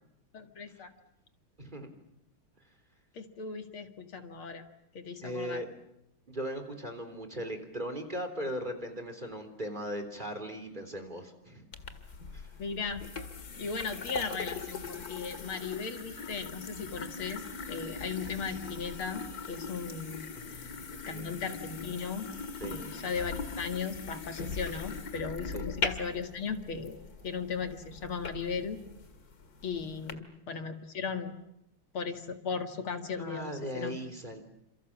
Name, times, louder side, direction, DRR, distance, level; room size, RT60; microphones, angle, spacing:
voice 1, 0.3-0.9 3.1-4.6 4.9-5.6 12.6-13.0 13.6-17.4 17.7-20.2 20.5-20.7 21.1-22.3 22.6-28.8 29.6-31.3 31.9-33.9, left 5 dB, 75° left, 6 dB, 2.8 m, -37 dB
voice 2, 1.6-1.9 5.2-5.7 6.3-11.7 12.3-12.5 20.3-21.4 22.6-22.8 25.5-25.7 30.1-30.6 33.2-34.4, equal, 20° right, 5 dB, 3.7 m, -39 dB
sound 1, 11.7-30.1, left 4 dB, 45° left, 2.2 m, -40 dB
29.0 x 27.5 x 7.5 m, 0.83 s
omnidirectional pair, 2.4 m